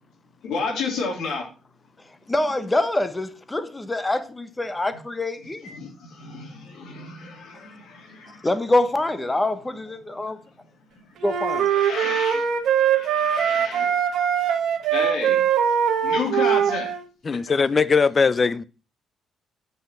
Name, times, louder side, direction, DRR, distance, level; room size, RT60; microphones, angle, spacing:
voice 1, 0.4-1.4 5.6-8.5 11.6-14.0 14.9-15.4 16.0-16.9 17.3-17.4, left 4 dB, 80° left, 3.1 m, -31 dB
voice 2, 2.3-5.7 8.4-10.4 11.2-11.7, left 2 dB, 15° left, 1.1 m, -25 dB
sound 1, 11.2-17.0, right 8 dB, 75° right, 1.3 m, -22 dB
voice 3, 17.2-18.6, left 5 dB, 35° left, 0.5 m, -20 dB
8.1 x 5.6 x 5.8 m
cardioid pair, 90°, 0 cm